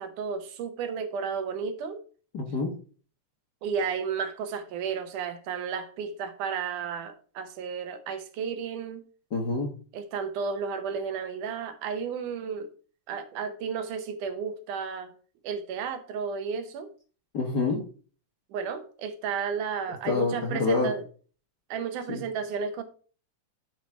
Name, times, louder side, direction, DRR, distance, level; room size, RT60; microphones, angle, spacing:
voice 1, 0.0-2.0 3.6-9.0 9.9-12.7 13.1-15.1 15.4-16.9 18.5-21.1 21.7-22.8, right 6 dB, 80° right, 2.5 m, -33 dB
voice 2, 2.3-2.7 9.3-9.7 17.3-17.8 20.0-20.9 22.1-22.2, left 3 dB, 50° left, 1.3 m, -27 dB
11.0 x 4.8 x 4.5 m
omnidirectional pair, 3.6 m